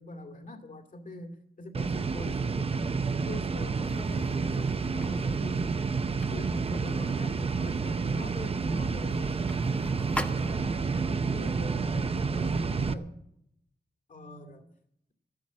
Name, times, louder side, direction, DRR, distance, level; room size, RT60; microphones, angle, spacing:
voice 1, 0.0-2.9 3.3-5.7 6.0-9.4 9.8-13.2 14.1-14.7, left 1 dB, 55° left, 4 dB, 2.3 m, -43 dB
sound 1, 1.7-12.9, right 4 dB, 40° right, 0.6 m, -29 dB
sound 2, 3.8-10.9, left 1 dB, 10° left, 1.1 m, -44 dB
13.0 x 10.5 x 7.4 m, 0.77 s
wide cardioid pair, 100°, 16 cm